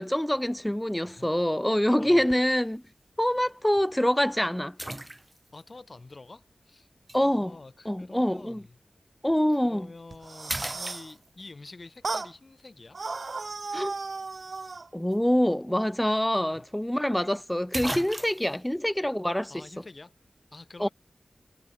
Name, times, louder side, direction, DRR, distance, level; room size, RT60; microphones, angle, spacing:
voice 1, 0.0-2.8 3.2-4.8 7.1-7.6 7.9-8.6 9.2-9.9 13.7-13.9 14.9-19.5 20.8-20.9, equal, 10° left, 0.3 m, -25 dB
sound 1, 2.3-2.6 3.3-3.4 4.8-5.6 7.1-7.2 9.4-9.6 10.0-10.2 10.5-11.6 15.7-15.8 16.1-16.2 17.2-17.3 17.7-18.6, right 1 dB, 15° right, 0.8 m, -36 dB
voice 2, 5.5-6.9 7.2-8.8 9.5-13.0 16.4-16.7 18.5-18.6 19.5-20.2 20.5-20.9, left 3 dB, 45° left, 4.6 m, -47 dB
sound 2, 10.1-11.1 12.0-12.3 12.9-14.9, right 4 dB, 65° right, 1.0 m, -35 dB
wide cardioid pair, 90°, 0 cm